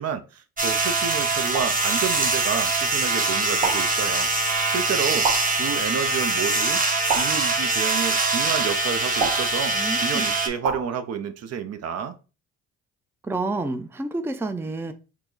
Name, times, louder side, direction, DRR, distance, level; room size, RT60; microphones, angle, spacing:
voice 1, 0.0-4.3 4.7-5.3 5.6-6.8 7.1-12.2, right 7 dB, 55° right, 0.6 m, -30 dB
sound 1, 0.6-10.5, right 3 dB, 25° right, 1.0 m, -23 dB
sound 2, 1.5-1.9 3.6-4.0 5.2-5.6 7.1-7.5 9.2-9.6 10.6-10.9, right 5 dB, 90° right, 1.1 m, -28 dB
voice 2, 9.7-10.2 13.2-14.9, right 2 dB, 10° right, 0.4 m, -29 dB
4.5 x 2.0 x 3.9 m
hypercardioid pair, 55°, 31 cm